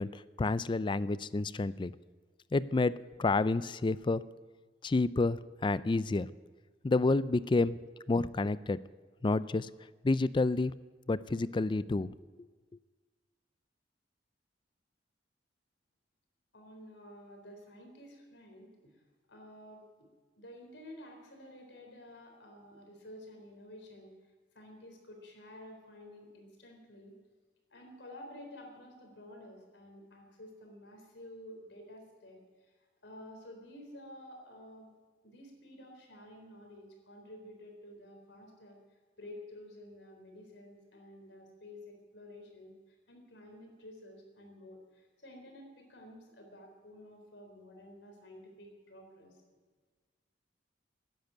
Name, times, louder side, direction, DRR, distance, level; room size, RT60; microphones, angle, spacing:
voice 1, 0.0-1.9 2.5-2.9 3.2-4.2 4.8-6.3 6.8-7.8 8.1-8.8 9.2-9.7 10.0-10.7 11.1-12.1, left 3 dB, 25° left, 17 dB, 0.4 m, -29 dB
voice 2, 16.5-18.7 19.3-20.1 20.3-24.1 24.5-27.1 27.7-32.7 33.0-34.9 35.2-38.8 39.2-49.4, left 1 dB, 75° left, 3 dB, 3.9 m, -51 dB
13.5 x 10.5 x 9.1 m, 1.4 s
head